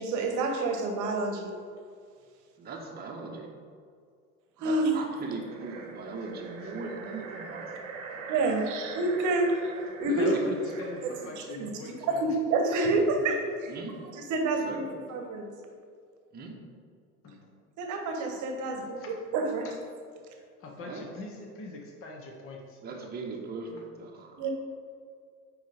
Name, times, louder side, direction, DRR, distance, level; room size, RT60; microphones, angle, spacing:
voice 1, 0.0-1.5 4.6-5.0 8.3-9.7 10.0-10.3 11.0-11.7 12.0-13.4 14.1-15.5 17.8-19.7 24.4-24.5, right 2 dB, 40° right, 3 dB, 1.2 m, -28 dB
voice 2, 2.6-3.5 4.6-7.7 10.1-10.4 13.7-14.0 14.7-14.9 16.3-16.6 20.8-21.1 22.8-24.5, right 4 dB, 20° right, 0 dB, 1.0 m, -39 dB
sound 1, 5.0-11.5, right 4 dB, 60° right, 1.1 m, -43 dB
voice 3, 9.9-12.2 12.9-13.4 17.2-17.5 19.0-19.2 19.6-19.7 20.6-22.8, left 2 dB, 30° left, 1 dB, 1.1 m, -40 dB
9.3 x 3.2 x 4.9 m, 2.1 s
figure-of-eight pair, 70°, 45 cm